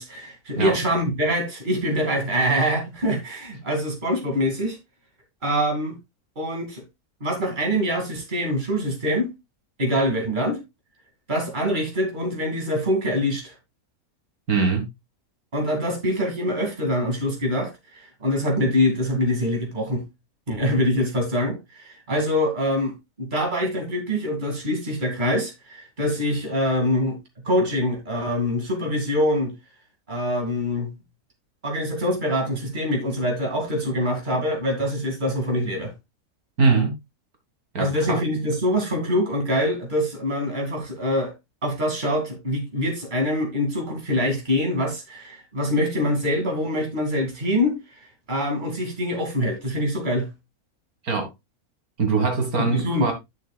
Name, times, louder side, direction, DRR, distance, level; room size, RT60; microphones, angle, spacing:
voice 1, 0.0-4.8 5.4-5.9 6.4-6.8 7.2-9.3 9.8-10.6 11.3-13.5 15.5-20.0 20.5-27.2 27.4-29.5 30.1-30.9 31.6-35.9 37.8-41.3 41.6-47.8 48.3-50.3 52.6-53.1, equal, 30° right, 2.6 m, -24 dB
voice 2, 14.5-14.9 36.6-36.9 37.7-38.2 51.0-51.3 52.0-53.1, right 4 dB, 75° right, 2.4 m, -22 dB
11.0 x 6.6 x 2.3 m
omnidirectional pair, 1.5 m